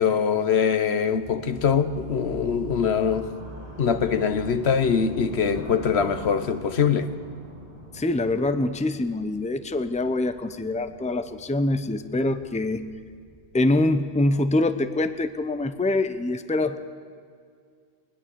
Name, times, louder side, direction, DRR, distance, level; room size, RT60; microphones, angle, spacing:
voice 1, 0.0-3.3 3.8-7.1, left 6 dB, 80° left, 1.3 m, -23 dB
sound 1, 1.1-16.0, equal, 35° right, 4.8 m, -43 dB
voice 2, 7.9-12.9 13.5-16.8, left 2 dB, 10° left, 0.7 m, -24 dB
20.5 x 20.0 x 7.0 m
omnidirectional pair, 1.1 m